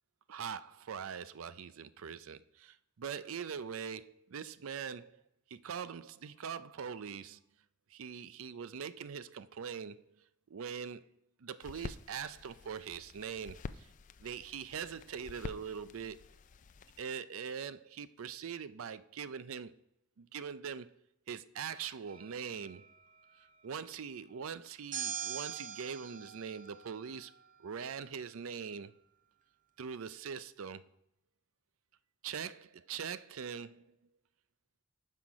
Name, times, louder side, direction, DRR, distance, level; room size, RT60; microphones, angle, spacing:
voice 1, 0.3-5.2 5.5-7.4 7.9-11.1 11.4-13.9 14.2-16.2 17.0-19.8 20.2-20.9 21.3-22.9 23.4-27.3 27.6-28.9 29.8-30.8 32.2-33.9, right 7 dB, 75° right, 0.4 m, -42 dB
sound 1, 11.6-17.0, left 4 dB, 35° left, 0.3 m, -48 dB
sound 2, 22.1-23.0 24.9-27.5, right 8 dB, 40° right, 0.7 m, -43 dB
10.5 x 5.8 x 5.1 m
head